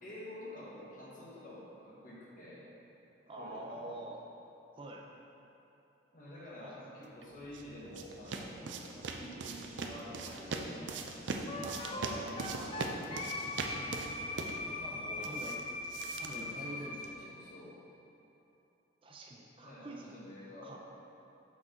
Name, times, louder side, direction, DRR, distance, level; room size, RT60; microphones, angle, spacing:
voice 1, 0.0-2.6 3.3-4.0 6.1-11.3 11.9-12.1 14.8-15.4 16.3-17.8 19.6-20.8, left 1 dB, 50° left, -7 dB, 1.5 m, -49 dB
voice 2, 3.3-4.2 4.8-5.0 6.6-6.8 11.6-11.9 12.5-12.7 13.3-14.1 15.2-15.6 16.2-17.3 19.0-20.2 20.6-20.8, right 1 dB, 30° right, -1 dB, 0.5 m, -47 dB
sound 1, 7.2-17.2, right 3 dB, 80° right, 0.5 m, -41 dB
Wind instrument woodwind instrument, 11.5-17.1, left 2 dB, 30° left, 0.4 m, -40 dB
6.2 x 6.0 x 3.8 m, 2.9 s
head